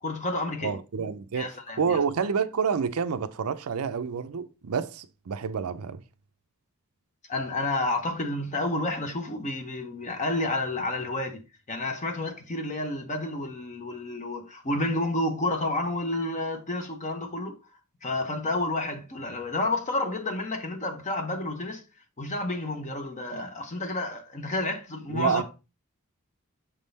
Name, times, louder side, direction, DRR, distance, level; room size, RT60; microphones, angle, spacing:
voice 1, 0.0-0.8 1.3-2.0 7.3-11.4 11.7-17.6 18.0-21.8 22.2-25.4, left 2 dB, 35° left, 0.8 m, -30 dB
voice 2, 0.6-6.0 25.1-25.4, right 6 dB, 85° right, 0.5 m, -28 dB
6.8 x 3.6 x 4.0 m
head